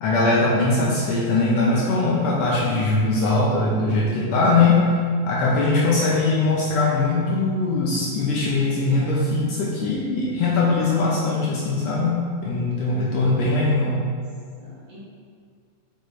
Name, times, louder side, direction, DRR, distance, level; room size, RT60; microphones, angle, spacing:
voice 1, 0.0-4.8 5.3-14.0, left 3 dB, 70° left, -5 dB, 1.8 m, -21 dB
voice 2, 12.8-13.6 14.6-15.0, right 1 dB, 50° right, -9 dB, 2.4 m, -42 dB
6.6 x 6.6 x 3.2 m, 2.1 s
omnidirectional pair, 3.5 m